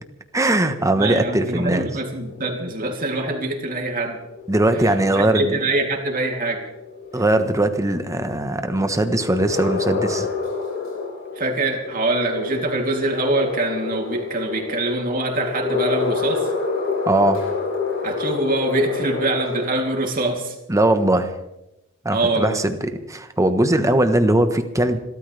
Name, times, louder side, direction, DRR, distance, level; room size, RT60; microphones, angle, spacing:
voice 1, 0.3-1.9 4.5-5.5 7.1-10.3 17.1-17.5 20.7-21.3 22.0-25.0, right 1 dB, 15° right, 8 dB, 1.2 m, -20 dB
voice 2, 0.9-4.2 4.7-4.9 5.1-6.6 11.4-16.5 18.0-20.5 22.1-22.6, right 2 dB, 45° right, 1 dB, 3.1 m, -24 dB
sound 1, 2.2-19.6, left 4 dB, 70° left, 5.4 m, -29 dB
28.0 x 13.0 x 3.4 m, 0.91 s
head